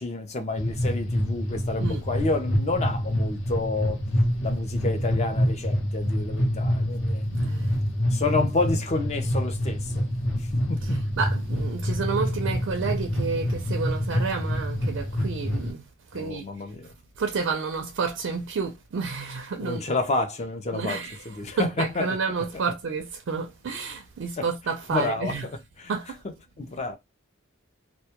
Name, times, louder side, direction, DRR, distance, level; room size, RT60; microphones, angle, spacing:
voice 1, 0.0-4.0 4.4-7.3 8.1-11.0 16.1-16.9 19.6-21.0 21.3-22.1 24.4-24.5 24.9-25.5 25.8-25.9 26.6-26.9, left 3 dB, 30° left, 0.4 m, -29 dB
sound 1, 0.6-15.7, equal, 65° left, 0.7 m, -26 dB
voice 2, 7.3-7.8 10.8-15.8 16.1-16.5 17.2-19.8 20.7-25.5 25.9-26.2, right 5 dB, 65° right, 0.4 m, -30 dB
2.1 x 2.1 x 2.8 m
head